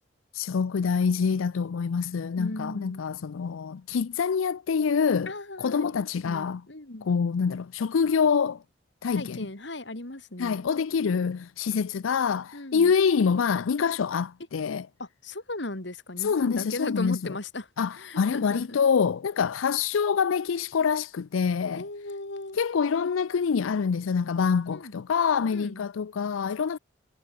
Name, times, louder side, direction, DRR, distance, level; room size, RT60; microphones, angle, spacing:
voice 1, 0.3-5.3 5.6-6.6 7.0-8.6 9.0-9.5 10.4-14.9 16.2-17.4 17.8-21.8 22.5-26.8, left 6 dB, 80° left, 0.4 m, -26 dB
voice 2, 2.4-3.0 5.3-7.1 9.1-10.7 12.5-12.9 15.0-17.7 17.9-18.8 21.7-22.6 24.7-24.9 25.5-25.8, left 2 dB, 60° left, 2.4 m, -37 dB
head